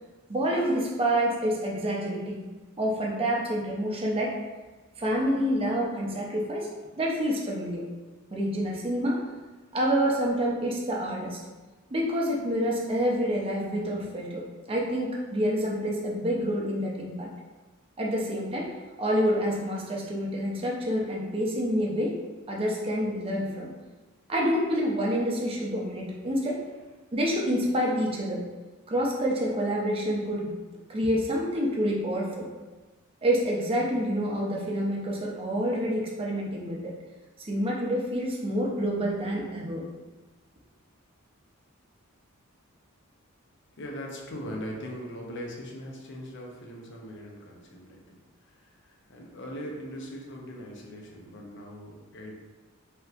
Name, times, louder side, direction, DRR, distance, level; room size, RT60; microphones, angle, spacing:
voice 1, 0.3-2.4 2.8-4.4 5.0-6.7 7.0-7.8 8.3-9.2 9.7-11.4 11.9-17.3 18.0-18.7 19.0-22.2 22.5-23.7 24.3-26.6 27.1-28.4 28.9-30.5 30.9-32.5 33.2-36.9 37.4-39.8, equal, 25° right, -2 dB, 0.5 m, -27 dB
voice 2, 43.8-52.3, equal, 60° left, 0 dB, 0.6 m, -40 dB
3.3 x 2.7 x 2.4 m, 1.2 s
head